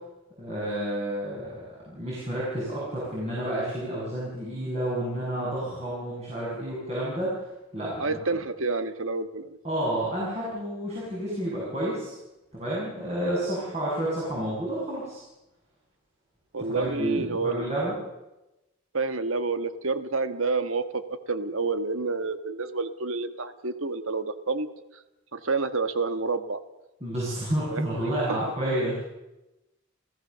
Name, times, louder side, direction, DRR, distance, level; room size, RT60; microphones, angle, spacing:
voice 1, 0.4-7.5 7.7-8.2 9.6-12.2 12.5-15.2 16.6-18.0 27.0-29.0, right 1 dB, 30° right, -7 dB, 7.3 m, -30 dB
voice 2, 8.0-9.6 16.5-17.7 18.9-24.7 25.3-26.6 27.7-27.8 28.3-28.4, right 3 dB, 75° right, 11 dB, 1.5 m, -29 dB
29.5 x 16.5 x 6.9 m, 0.99 s
head